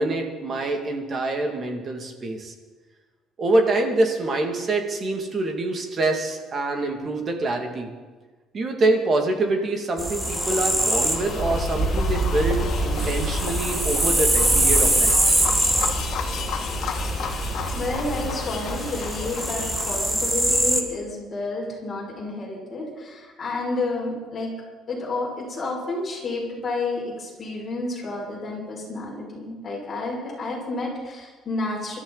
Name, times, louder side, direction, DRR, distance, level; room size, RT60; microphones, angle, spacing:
voice 1, 0.0-2.5 3.4-7.9 8.5-15.2, right 2 dB, 30° right, 3 dB, 2.2 m, -25 dB
sound 1, 10.0-20.8, right 1 dB, 10° right, 1.5 m, -23 dB
sound 2, 10.1-20.2, left 6 dB, 50° left, 2.3 m, -33 dB
voice 2, 17.7-24.5 24.9-32.0, left 2 dB, 25° left, -4 dB, 5.9 m, -30 dB
25.5 x 13.0 x 4.1 m, 1.3 s
cardioid pair, 160°, 0 cm